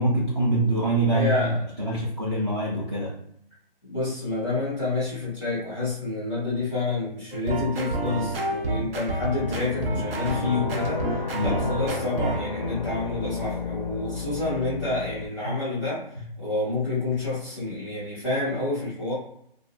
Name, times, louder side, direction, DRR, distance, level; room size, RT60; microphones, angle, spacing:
voice 1, 0.0-1.5 1.8-3.1 11.3-11.6 15.4-15.5, right 1 dB, 30° right, -5 dB, 0.4 m, -24 dB
voice 2, 1.1-1.7 3.9-19.1, left 3 dB, 5° right, -9 dB, 0.7 m, -29 dB
sound 1, 7.3-12.4, right 2 dB, 75° right, 0.7 m, -29 dB
sound 2, 9.3-15.3, left 4 dB, 40° left, 0.4 m, -33 dB
2.3 x 2.1 x 3.0 m, 0.73 s
hypercardioid pair, 160°, 29 cm